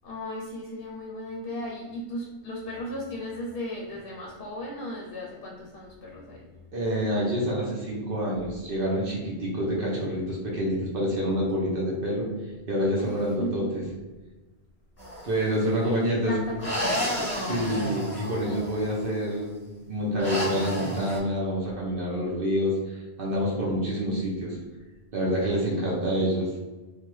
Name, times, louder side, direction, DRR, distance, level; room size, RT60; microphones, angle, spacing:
voice 1, 0.0-6.5 13.0-13.7 15.0-15.3 15.8-17.7, left 1 dB, 65° left, -2 dB, 0.8 m, -36 dB
voice 2, 6.7-12.3 12.7-13.8 15.2-16.4 17.4-19.6 19.9-24.6 25.1-26.5, equal, 60° right, -4 dB, 0.8 m, -27 dB
sound 1, 15.0-15.5 16.6-19.0 20.2-21.2, equal, 15° right, 1.4 m, -31 dB
3.4 x 2.1 x 3.0 m, 1.2 s
omnidirectional pair, 1.1 m